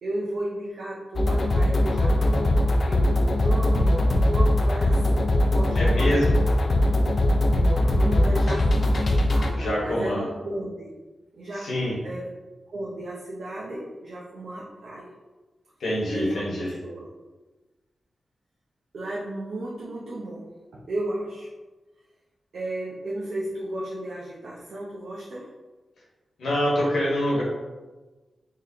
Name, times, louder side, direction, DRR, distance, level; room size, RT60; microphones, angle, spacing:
voice 1, 0.0-6.6 8.0-11.0 11.3-11.7 12.0-12.3 12.7-15.1 16.1-17.1 18.9-21.5 22.5-25.5, right 1 dB, 85° right, -6 dB, 0.6 m, -34 dB
sound 1, 1.2-9.5, left 1 dB, 55° left, 0.4 m, -21 dB
voice 2, 5.7-6.4 9.5-10.2 11.5-11.9 15.8-16.7 26.4-27.4, equal, 90° left, -4 dB, 1.1 m, -25 dB
3.8 x 3.2 x 2.8 m, 1.2 s
wide cardioid pair, 115°, 0 cm